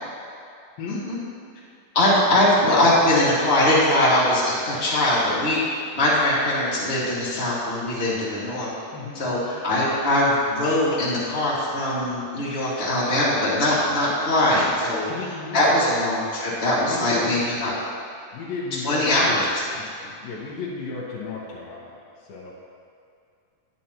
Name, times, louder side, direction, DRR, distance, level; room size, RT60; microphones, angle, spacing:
voice 1, 0.9-1.2 1.9-5.6 5.9-8.7 9.1-15.3 15.5-17.7 18.8-19.8, left 1 dB, 25° left, -8 dB, 1.3 m, -21 dB
voice 2, 8.9-9.5 15.1-15.6 16.8-17.3 18.3-19.4 20.2-21.9 22.3-22.5, left 4 dB, 85° left, -6 dB, 2.9 m, -33 dB
11.0 x 9.1 x 2.9 m, 2.4 s
omnidirectional pair, 4.1 m